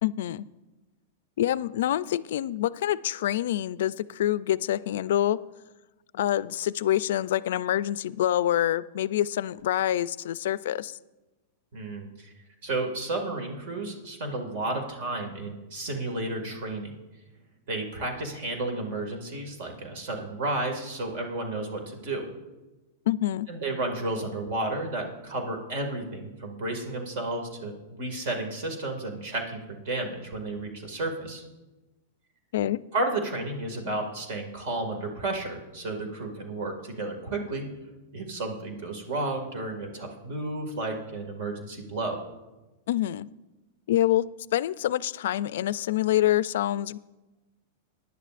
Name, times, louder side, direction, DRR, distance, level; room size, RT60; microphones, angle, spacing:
voice 1, 0.0-0.5 1.4-5.4 6.1-11.0 23.1-23.5 32.5-32.8 42.9-43.3 43.9-44.3 44.5-47.0, left 12 dB, 70° left, 18 dB, 0.3 m, -26 dB
voice 2, 11.7-12.3 12.6-16.9 17.7-22.3 23.5-31.4 32.9-37.7 38.1-42.2, right 2 dB, 60° right, 4 dB, 2.0 m, -32 dB
19.0 x 10.5 x 2.5 m, 1.1 s
supercardioid pair, 145°, 0 cm